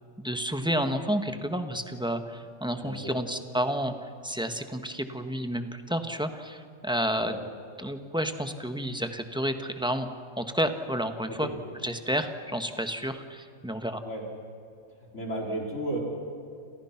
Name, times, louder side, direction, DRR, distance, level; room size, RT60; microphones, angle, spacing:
voice 1, 0.2-7.4 7.8-10.1 10.4-11.5 11.8-14.0, equal, 5° right, 6 dB, 1.4 m, -30 dB
voice 2, 2.8-3.2 7.2-7.4 11.3-11.5 14.0-14.2 15.0-16.0, right 1 dB, 55° left, -1 dB, 4.8 m, -34 dB
29.0 x 28.5 x 6.0 m, 2.4 s
omnidirectional pair, 1.5 m